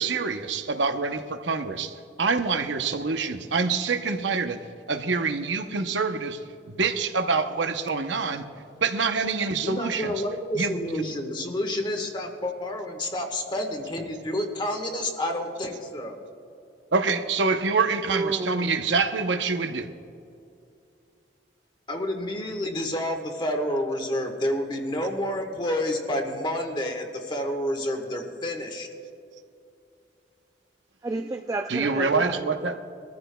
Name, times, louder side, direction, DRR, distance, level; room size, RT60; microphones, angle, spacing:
voice 1, 0.0-4.6 4.9-8.4 8.8-10.1 10.5-11.1 16.9-19.9 31.7-32.8, right 4 dB, 80° right, 8 dB, 0.8 m, -26 dB
voice 2, 9.6-16.2 21.9-28.9, left 1 dB, 25° left, 3 dB, 1.3 m, -29 dB
voice 3, 18.1-18.7 31.0-32.8, right 2 dB, 20° right, 4 dB, 0.4 m, -31 dB
23.5 x 14.5 x 2.3 m, 2.6 s
head